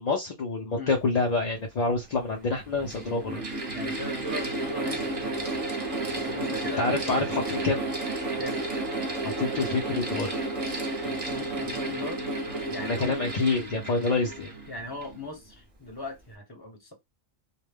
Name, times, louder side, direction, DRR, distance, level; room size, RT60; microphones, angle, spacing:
voice 1, 0.0-3.4 6.8-7.8 9.2-10.4 12.8-14.5, left 3 dB, 55° left, 0.5 m, -27 dB
Mechanical fan, 1.6-1.7 2.5-15.2, right 2 dB, 35° right, 0.7 m, -32 dB
voice 2, 3.7-5.6 6.1-7.0 8.4-8.6 11.0-12.2 12.7-13.2 14.7-16.9, left 2 dB, 20° left, 0.8 m, -38 dB
2.2 x 2.1 x 3.3 m
omnidirectional pair, 1.3 m